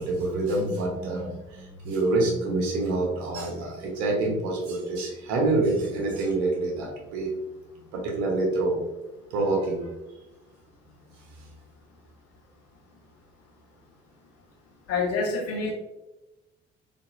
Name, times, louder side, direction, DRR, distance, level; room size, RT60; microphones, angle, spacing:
voice 1, 0.0-7.4 7.9-8.8 9.3-9.9, right 2 dB, 65° right, -1 dB, 1.0 m, -26 dB
voice 2, 14.9-15.7, left 4 dB, 50° left, -3 dB, 1.4 m, -26 dB
4.0 x 3.2 x 2.6 m, 1.0 s
figure-of-eight pair, 45°, 32 cm